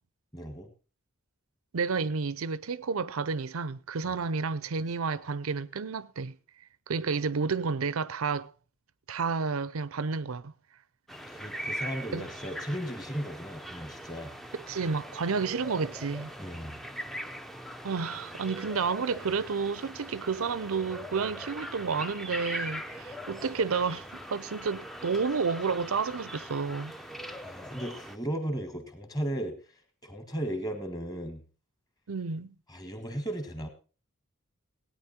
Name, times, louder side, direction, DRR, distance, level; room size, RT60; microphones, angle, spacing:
voice 1, 0.3-0.7 4.0-4.1 11.3-14.3 16.4-16.8 27.4-29.5 30.0-31.4 32.7-33.7, right 1 dB, 20° left, 1.6 m, -36 dB
voice 2, 1.7-6.4 6.9-8.5 9.1-10.5 12.1-12.3 14.7-16.3 17.8-26.9 32.1-32.5, right 5 dB, 80° right, 0.6 m, -31 dB
sound 1, 11.1-28.2, equal, ahead, 0.5 m, -41 dB
17.5 x 9.3 x 4.3 m
head